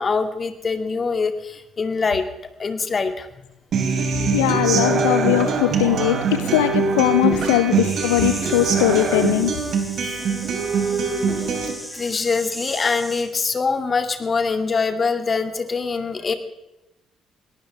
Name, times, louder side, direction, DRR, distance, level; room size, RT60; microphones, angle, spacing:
voice 1, 0.0-2.2 2.6-3.3 7.3-7.4 10.0-10.3 11.1-11.5 11.9-16.3, left 4 dB, 40° left, 8 dB, 2.3 m, -24 dB
Human voice / Acoustic guitar, 3.7-11.7, right 4 dB, 55° right, 3.6 m, -22 dB
voice 2, 4.1-9.5, left 15 dB, 80° left, 12 dB, 0.6 m, -20 dB
sound 1, 7.9-13.2, equal, ahead, 4.4 m, -37 dB
22.0 x 18.0 x 3.5 m, 0.93 s
hypercardioid pair, 45°, 0 cm